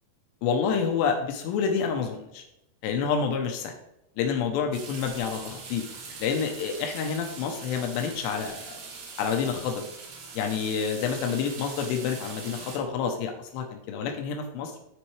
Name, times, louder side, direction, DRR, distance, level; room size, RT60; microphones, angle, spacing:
voice 1, 0.4-2.4 2.8-3.7 4.2-5.8 6.2-8.7 9.2-9.9 10.3-14.7, left 6 dB, 80° left, 4 dB, 2.6 m, -28 dB
sound 1, 4.7-12.8, right 4 dB, 65° right, 3.6 m, -42 dB
13.0 x 4.4 x 3.2 m, 0.84 s
omnidirectional pair, 5.7 m